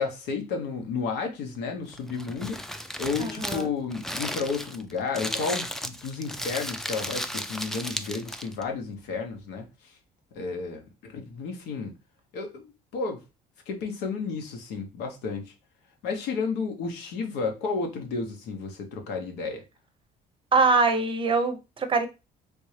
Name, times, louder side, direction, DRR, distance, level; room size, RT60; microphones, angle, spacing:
voice 1, 0.0-2.6 3.0-9.7 10.3-11.9 12.3-13.2 13.7-15.5 16.0-19.6, left 4 dB, 85° left, 1.0 m, -32 dB
Crumpling crinkling, 1.9-8.6, equal, ahead, 0.3 m, -35 dB
voice 2, 3.2-3.7 20.5-22.1, right 4 dB, 30° right, 0.6 m, -23 dB
3.4 x 2.7 x 3.2 m
cardioid pair, 110°, 17 cm